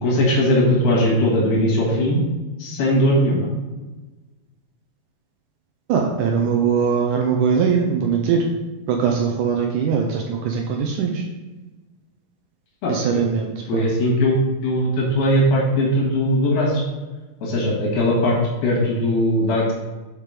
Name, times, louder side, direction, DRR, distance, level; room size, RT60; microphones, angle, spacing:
voice 1, 0.0-2.2 2.6-3.5 12.8-13.3 13.7-16.8 17.4-19.7, equal, 90° left, -4 dB, 3.8 m, -19 dB
voice 2, 5.9-8.5 8.9-11.3 12.9-13.9, right 6 dB, 75° right, 2 dB, 2.1 m, -21 dB
7.5 x 4.9 x 4.9 m, 1.2 s
omnidirectional pair, 4.1 m